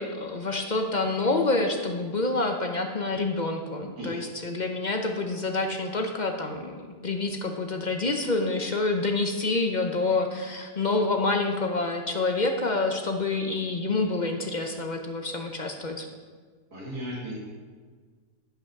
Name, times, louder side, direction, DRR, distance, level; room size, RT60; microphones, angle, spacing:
voice 1, 0.0-16.1, left 3 dB, 40° left, 4 dB, 0.6 m, -27 dB
voice 2, 16.7-17.4, equal, 90° right, -5 dB, 2.5 m, -35 dB
11.0 x 5.5 x 5.8 m, 1.5 s
omnidirectional pair, 1.6 m